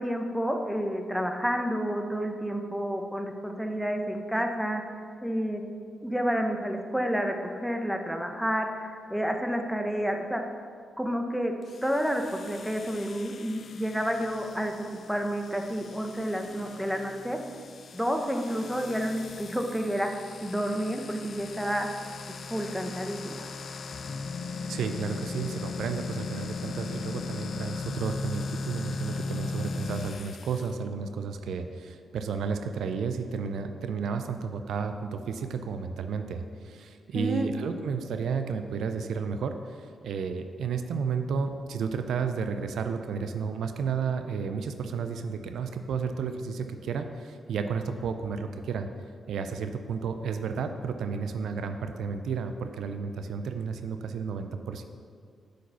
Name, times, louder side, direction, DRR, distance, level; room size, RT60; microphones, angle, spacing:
voice 1, 0.0-4.8 5.2-5.6 6.0-10.4 11.0-11.5 11.8-14.7 15.1-17.4 17.9-21.9 22.3-23.5 37.1-37.5, equal, ahead, 4 dB, 1.0 m, -30 dB
sound 1, 11.6-30.7, left 4 dB, 60° left, 0.4 m, -38 dB
voice 2, 24.7-48.9 49.3-54.9, right 5 dB, 75° right, 7 dB, 0.4 m, -32 dB
6.0 x 5.1 x 6.8 m, 2.2 s
supercardioid pair, 50°, 0 cm